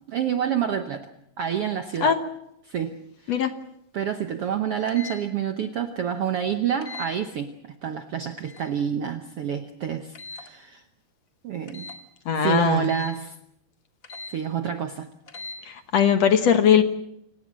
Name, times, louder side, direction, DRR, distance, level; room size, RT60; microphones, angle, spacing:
voice 1, 0.1-1.1 1.4-2.2 2.6-3.5 3.9-10.8 11.4-11.9 12.4-13.4 14.3-15.1, right 8 dB, 70° right, 7 dB, 1.4 m, -28 dB
sound 1, 4.9-5.2 6.8-7.1 8.4-8.7 10.1-10.5 11.7-12.0 12.8-13.1 14.0-14.3 15.3-15.6, left 3 dB, 30° left, 1.9 m, -39 dB
voice 2, 12.3-12.9 15.7-16.8, left 8 dB, 60° left, 8 dB, 2.0 m, -20 dB
28.5 x 18.5 x 7.5 m, 0.79 s
omnidirectional pair, 3.9 m